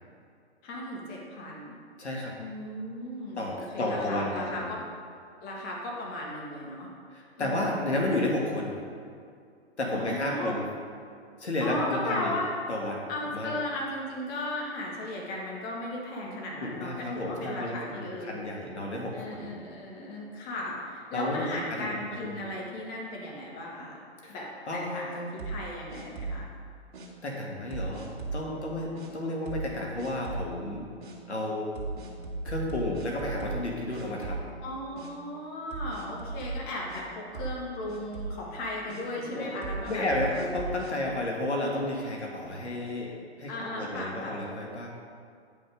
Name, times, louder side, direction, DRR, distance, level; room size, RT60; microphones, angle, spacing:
voice 1, 0.6-1.8 2.4-4.8 5.4-6.9 7.4-7.9 9.9-10.6 11.6-12.5 13.1-18.4 19.1-24.0 24.3-26.5 34.6-40.1 43.5-44.5, left 1 dB, 30° left, -3 dB, 1.9 m, -36 dB
voice 2, 2.0-2.4 3.4-4.7 7.1-8.8 9.8-10.6 11.4-12.4 12.7-13.6 16.6-19.5 21.1-21.9 22.2-22.4 24.2-24.4 24.7-25.3 27.2-30.9 31.3-31.7 32.4-34.5 39.2-43.1 43.4-44.9, left 1 dB, 85° left, -1 dB, 1.8 m, -32 dB
sound 1, 25.4-26.5 26.9-27.1 27.7-28.5 29.0-29.1 29.5-29.7 30.0-30.5 31.0-31.2 31.8-33.7 33.9-34.7 35.0-35.1 35.7-37.0 37.3-37.6 37.9-38.4 38.9-39.0 39.6-40.9, right 3 dB, 45° right, 1.8 m, -37 dB
9.9 x 5.4 x 5.1 m, 2.3 s
hypercardioid pair, 125°, 33 cm